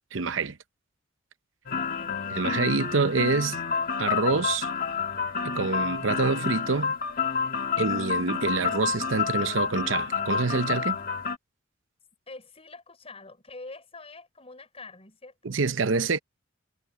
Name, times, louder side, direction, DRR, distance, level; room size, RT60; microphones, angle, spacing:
voice 1, 0.1-0.6 2.3-3.6 4.0-4.7 5.4-7.0 7.8-11.0 15.4-16.2, right 4 dB, 65° right, 0.8 m, -26 dB
sound 1, 1.7-11.4, left 6 dB, 45° left, 2.0 m, -29 dB
voice 2, 1.8-2.4 12.3-15.5, left 3 dB, 30° left, 6.1 m, -45 dB
head